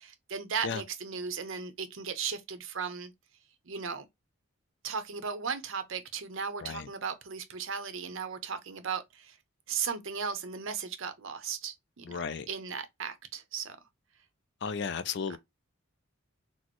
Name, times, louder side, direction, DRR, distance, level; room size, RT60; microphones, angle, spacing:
voice 1, 0.0-3.1 3.7-4.0 4.8-9.4 9.7-13.8 15.3-15.4, right 6 dB, 65° right, 0.6 m, -36 dB
voice 2, 12.0-12.5 14.6-15.4, left 6 dB, 50° left, 0.3 m, -34 dB
4.1 x 2.0 x 2.9 m
head